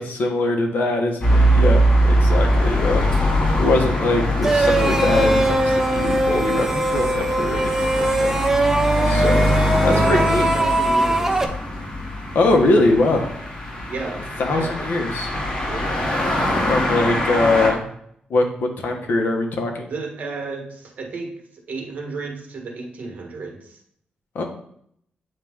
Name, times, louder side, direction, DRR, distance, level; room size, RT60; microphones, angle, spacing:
voice 1, 0.0-3.0 3.6-8.4 9.0-9.5 9.8-10.5 12.3-13.3 14.4-15.3 16.7-17.8 18.3-18.4 18.8-19.9 24.3-24.4, left 2 dB, 70° left, 2 dB, 1.2 m, -22 dB
sound 1, 1.2-17.7, equal, 30° left, 2.2 m, -22 dB
sound 2, 4.4-11.4, right 2 dB, 15° right, 0.7 m, -21 dB
voice 2, 9.9-11.4 13.9-14.9 15.6-16.0 19.9-21.4 21.7-23.8, right 3 dB, 55° right, 2 dB, 1.4 m, -32 dB
8.6 x 3.2 x 3.6 m, 0.68 s
wide cardioid pair, 125°, 3 cm